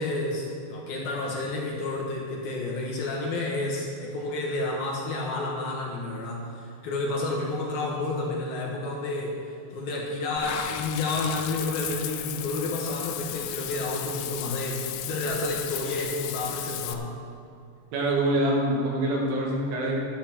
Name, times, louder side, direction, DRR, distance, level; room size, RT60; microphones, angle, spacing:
voice 1, 0.0-17.1, left 2 dB, 65° left, -2 dB, 2.6 m, -30 dB
Water / Bathtub (filling or washing), 10.4-16.9, left 12 dB, 90° left, 3.1 m, -35 dB
voice 2, 17.9-20.0, right 1 dB, 85° right, -2 dB, 4.5 m, -25 dB
11.5 x 9.5 x 5.8 m, 2.6 s
omnidirectional pair, 5.4 m